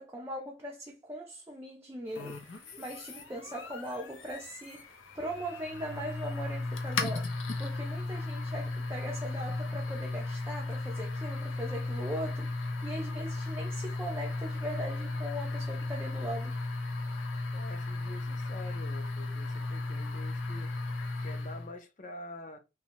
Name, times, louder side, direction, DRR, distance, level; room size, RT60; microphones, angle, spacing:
voice 1, 0.0-16.6, equal, 15° right, 0.3 m, -40 dB
sound 1, 2.1-21.7, left 2 dB, 90° left, 0.6 m, -35 dB
voice 2, 17.5-20.7 21.2-22.6, left 2 dB, 40° left, 0.5 m, -46 dB
2.6 x 2.2 x 2.8 m
head